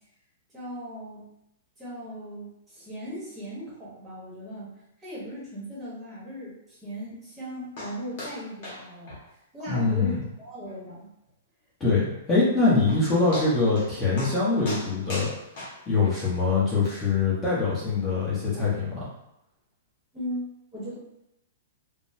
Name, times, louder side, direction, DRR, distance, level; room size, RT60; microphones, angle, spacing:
voice 1, 0.5-1.3 1.8-4.7 5.0-9.2 9.5-11.1 20.1-20.9, equal, 10° right, -8 dB, 1.1 m, -38 dB
sound 1, 7.8-7.9 8.2-8.4 8.6-8.8 9.1-9.2 9.6-9.7 10.1-10.2 10.7-10.8 12.4-12.5 12.9-13.0 13.3-13.9 14.2-14.4 14.6-16.1 16.8-16.9, left 1 dB, 50° left, 1.3 m, -36 dB
voice 2, 9.7-10.1 11.8-15.3 15.9-19.1, left 4 dB, 15° left, -8 dB, 1.0 m, -23 dB
3.6 x 2.1 x 2.7 m, 0.84 s
hypercardioid pair, 150°, 0 cm